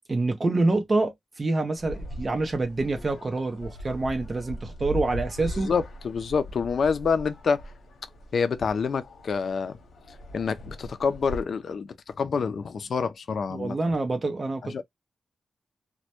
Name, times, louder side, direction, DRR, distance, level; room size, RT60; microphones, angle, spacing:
voice 1, 0.1-5.7 13.5-14.8, right 2 dB, 30° right, 0.5 m, -26 dB
sound 1, 1.8-11.5, equal, 85° left, 0.7 m, -40 dB
voice 2, 5.5-7.6 8.3-9.8 10.3-13.8 14.7-14.8, left 5 dB, 60° left, 0.3 m, -27 dB
2.1 x 2.1 x 2.8 m
wide cardioid pair, 150°, 0 cm